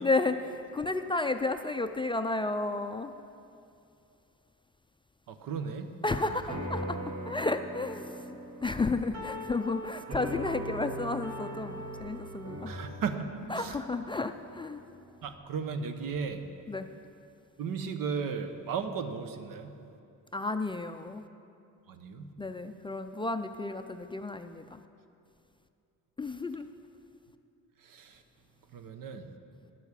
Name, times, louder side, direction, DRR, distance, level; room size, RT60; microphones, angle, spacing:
voice 1, 0.0-3.1 6.0-7.0 7.3-8.4 8.6-12.7 13.5-14.8 16.7-16.9 20.3-21.2 22.4-24.8 26.2-26.7, left 3 dB, 15° left, 8 dB, 0.3 m, -32 dB
voice 2, 5.3-6.2 12.7-13.3 13.6-13.8 15.2-16.4 17.6-19.8 21.9-22.3 27.8-28.2 28.7-29.3, right 6 dB, 75° right, 9 dB, 0.9 m, -35 dB
sound 1, 6.5-15.2, right 1 dB, 50° right, 1.8 m, -40 dB
10.0 x 7.1 x 8.2 m, 2.5 s
cardioid pair, 110°, 34 cm